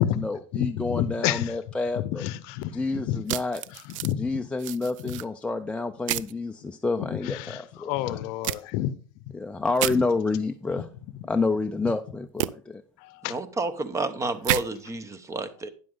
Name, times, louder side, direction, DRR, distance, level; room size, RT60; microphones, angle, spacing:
voice 1, 0.0-2.3 2.7-3.6 4.1-8.3 9.3-10.9 11.3-12.8, left 3 dB, 5° left, 0.5 m, -29 dB
voice 2, 0.9-1.4 2.2-2.7 3.1-3.2 4.0-4.2 7.5-7.6 7.9-8.9 13.2-13.3, left 13 dB, 55° left, 0.7 m, -27 dB
sound 1, 3.3-4.1 4.6-5.2 6.1-6.3 8.4-8.6 9.8-10.0 12.4-12.5 14.4-14.6, right 15 dB, 70° right, 0.5 m, -29 dB
voice 3, 13.2-15.7, right 2 dB, 15° right, 0.9 m, -30 dB
9.9 x 7.5 x 3.8 m
hypercardioid pair, 115°, 17 cm